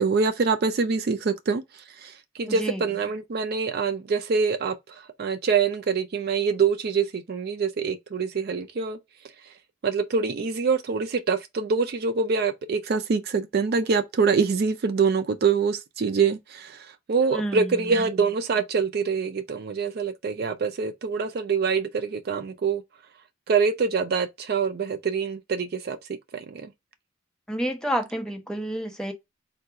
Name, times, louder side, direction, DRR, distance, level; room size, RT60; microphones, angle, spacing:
voice 1, 0.0-1.6 2.0-9.0 9.8-22.8 23.5-26.0 26.3-26.7, right 5 dB, 45° right, 0.4 m, -25 dB
voice 2, 2.5-3.0 17.2-18.1 27.5-29.1, right 1 dB, 5° left, 0.6 m, -30 dB
3.8 x 2.3 x 4.5 m
head